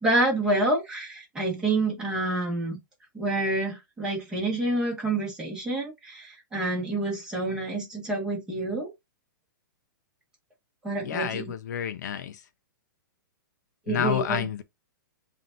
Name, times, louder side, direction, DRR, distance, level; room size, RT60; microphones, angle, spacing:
voice 1, 0.0-2.8 3.1-8.9 10.8-11.4 13.9-14.4, right 2 dB, 5° right, 1.5 m, -28 dB
voice 2, 11.0-12.4 13.9-14.6, left 9 dB, 55° left, 0.5 m, -29 dB
7.5 x 2.6 x 2.6 m
hypercardioid pair, 165°, 11 cm